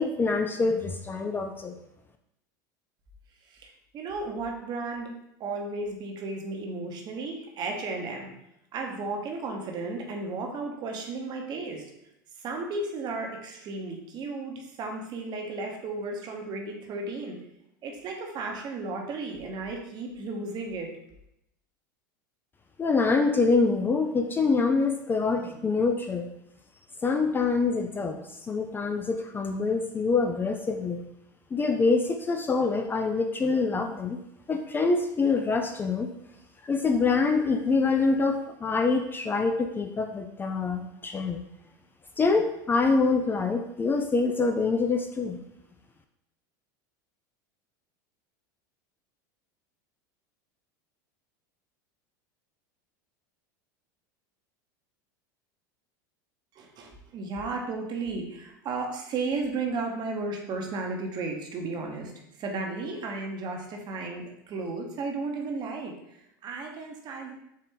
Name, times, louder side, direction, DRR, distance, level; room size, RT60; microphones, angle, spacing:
voice 1, 0.0-1.7 22.8-26.3 27.0-31.0 31.5-34.2 34.5-36.1 36.6-41.4 42.2-45.4, left 4 dB, 20° left, 5 dB, 0.3 m, -25 dB
voice 2, 3.5-5.1 5.4-8.3 8.7-11.9 12.4-17.4 17.8-20.9 56.5-62.1 62.4-67.3, right 3 dB, 45° right, 2 dB, 0.8 m, -34 dB
4.2 x 2.5 x 3.6 m, 0.81 s
hypercardioid pair, 100°, 11 cm